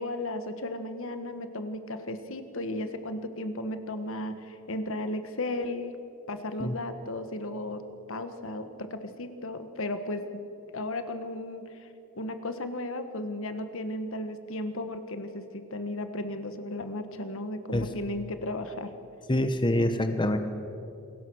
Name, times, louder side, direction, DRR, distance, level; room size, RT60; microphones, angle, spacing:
voice 1, 0.0-5.9 6.3-7.8 8.1-10.4 10.7-11.9 12.2-18.9, left 1 dB, 65° left, 9 dB, 1.6 m, -35 dB
voice 2, 19.3-20.4, left 1 dB, 20° left, 8 dB, 1.1 m, -25 dB
28.0 x 21.0 x 6.4 m, 2.7 s
head